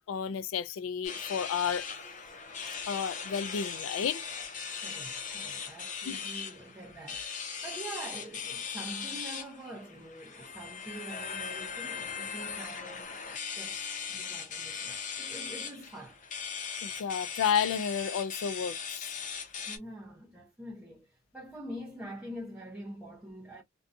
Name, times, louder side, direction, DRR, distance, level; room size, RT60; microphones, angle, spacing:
voice 1, 0.1-1.9 2.9-4.2 6.1-6.2 16.8-19.1, left 7 dB, 80° left, 0.3 m, -31 dB
sound 1, 1.0-19.8, left 6 dB, 40° left, 0.6 m, -39 dB
voice 2, 4.8-13.2 13.5-16.2 19.7-23.6, right 1 dB, 5° right, 0.7 m, -45 dB
2.6 x 2.3 x 2.5 m
head